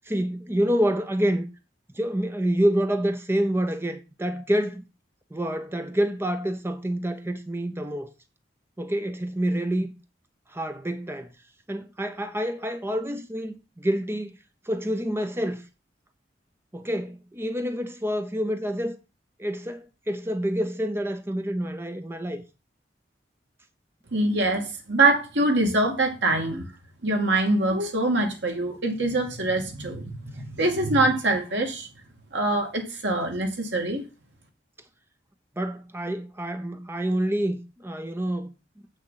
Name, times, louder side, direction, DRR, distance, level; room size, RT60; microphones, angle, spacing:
voice 1, 0.1-1.5 1.9-4.8 5.3-8.1 8.8-9.9 10.5-11.3 11.7-14.3 14.6-15.6 16.7-19.0 19.4-22.4 35.6-38.5, equal, 15° right, 0.8 m, -27 dB
voice 2, 24.1-26.7 27.0-31.9 32.3-34.0, right 2 dB, 80° right, 2.4 m, -24 dB
8.1 x 6.4 x 5.7 m
head